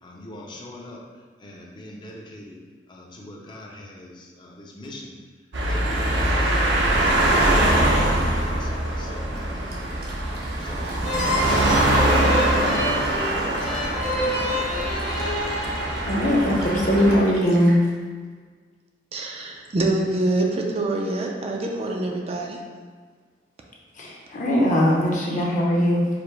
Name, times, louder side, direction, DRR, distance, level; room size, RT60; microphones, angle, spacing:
voice 1, 0.0-2.6 2.9-5.1 5.6-7.5 7.8-10.3 10.6-10.9 11.2-11.8 12.4-13.1 13.3-14.5, left 1 dB, 25° left, -1 dB, 0.6 m, -42 dB
sound 1, 5.5-17.2, right 1 dB, 85° right, 0.8 m, -23 dB
Fill (with liquid), 9.7-17.8, right 1 dB, 60° right, 1.0 m, -39 dB
sound 2, 11.0-16.5, left 1 dB, 65° left, 1.5 m, -28 dB
voice 2, 16.0-17.8 23.9-26.1, equal, 45° left, -3 dB, 0.9 m, -20 dB
voice 3, 19.1-22.6, right 2 dB, 35° right, 0 dB, 0.4 m, -25 dB
5.0 x 2.1 x 4.5 m, 1.5 s
head